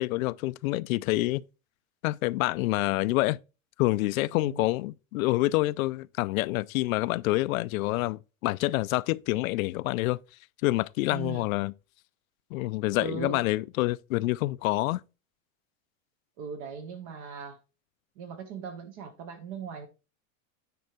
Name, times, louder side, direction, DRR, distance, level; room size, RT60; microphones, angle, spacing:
voice 1, 0.0-1.4 2.0-3.4 3.8-10.2 10.6-11.7 12.5-15.0, left 19 dB, 80° left, 0.5 m, -27 dB
voice 2, 4.3-4.7 11.1-11.5 13.0-13.4 16.4-17.6 18.2-19.9, right 6 dB, 20° right, 0.3 m, -39 dB
9.4 x 4.6 x 4.2 m
supercardioid pair, 170°, 41 cm